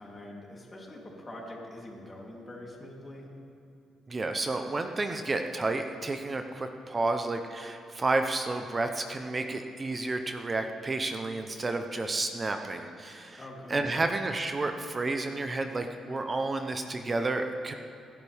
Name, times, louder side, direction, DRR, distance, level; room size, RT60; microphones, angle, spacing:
voice 1, 0.0-3.3 13.4-14.0, left 1 dB, 25° left, -3 dB, 3.5 m, -44 dB
voice 2, 4.1-13.4 13.7-17.7, right 2 dB, 30° right, 6 dB, 0.9 m, -31 dB
29.0 x 11.0 x 3.6 m, 2.5 s
cardioid pair, 90°, 0 cm